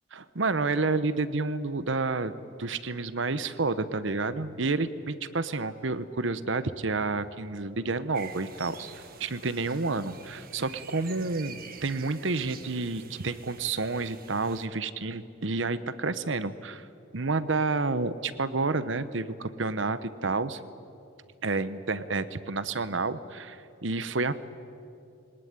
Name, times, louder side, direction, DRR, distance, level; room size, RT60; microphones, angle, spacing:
voice 1, 0.1-2.3 2.6-8.9 9.2-16.9 17.1-20.6 21.4-24.3, right 3 dB, 65° right, 14 dB, 1.0 m, -30 dB
sound 1, 8.1-14.7, right 6 dB, 45° right, 1.5 m, -47 dB
22.5 x 19.0 x 9.6 m, 2.6 s
head